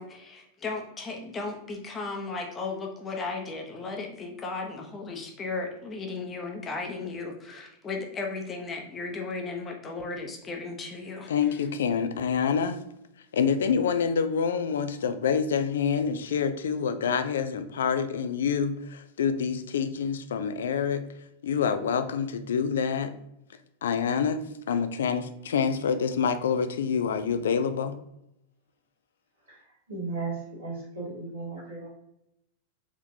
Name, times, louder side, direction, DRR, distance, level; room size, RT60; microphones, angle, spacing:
voice 1, 0.0-11.6, left 3 dB, 20° left, 2 dB, 0.8 m, -35 dB
voice 2, 11.3-12.8 13.3-21.1 21.4-23.2 23.8-28.0, left 6 dB, 65° left, 11 dB, 0.3 m, -27 dB
voice 3, 29.9-31.9, right 3 dB, 80° right, -10 dB, 1.4 m, -35 dB
3.6 x 3.4 x 2.8 m, 0.82 s
figure-of-eight pair, 90°, 0 cm